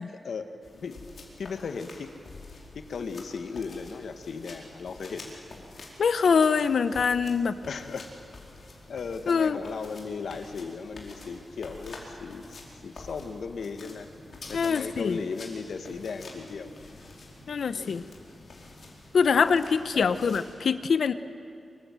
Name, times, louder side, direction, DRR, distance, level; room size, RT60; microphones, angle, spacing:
voice 1, 0.1-0.5 0.7-1.0 1.4-2.1 2.7-5.4 7.7-8.1 8.9-12.4 12.8-14.1 14.5-16.7 17.7-18.2 19.9-20.1, left 5 dB, 90° left, 7 dB, 1.7 m, -36 dB
sound 1, 0.6-20.5, left 3 dB, 55° left, 4.6 m, -47 dB
voice 2, 6.0-7.6 9.3-9.6 14.5-15.2 17.5-18.0 19.1-21.1, left 6 dB, 75° left, 12 dB, 0.9 m, -24 dB
25.0 x 24.0 x 7.8 m, 2.7 s
wide cardioid pair, 175°, 0 cm